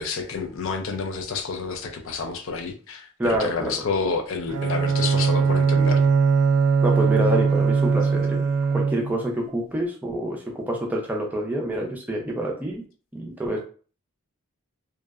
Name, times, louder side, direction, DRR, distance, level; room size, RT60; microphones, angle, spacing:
voice 1, 0.0-6.1, left 4 dB, 60° left, 0.4 m, -29 dB
voice 2, 3.2-3.7 6.8-8.4 8.7-12.8 13.1-13.6, right 1 dB, 5° right, 0.4 m, -27 dB
Bowed string instrument, 4.5-9.3, right 5 dB, 85° right, 0.3 m, -20 dB
2.6 x 2.1 x 2.3 m
head